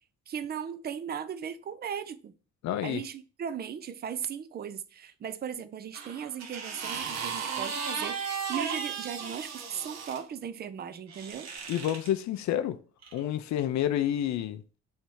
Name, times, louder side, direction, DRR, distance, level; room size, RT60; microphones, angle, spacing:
voice 1, 0.3-2.3 2.8-11.5, right 8 dB, 35° right, 0.4 m, -37 dB
voice 2, 2.6-3.0 11.7-12.8 13.1-14.6, left 11 dB, 65° left, 0.5 m, -29 dB
sound 1, 5.9-10.2 11.1-12.1 13.0-13.2, right 6 dB, 60° right, 0.8 m, -35 dB
3.3 x 2.7 x 4.5 m
cardioid pair, 90°, 30 cm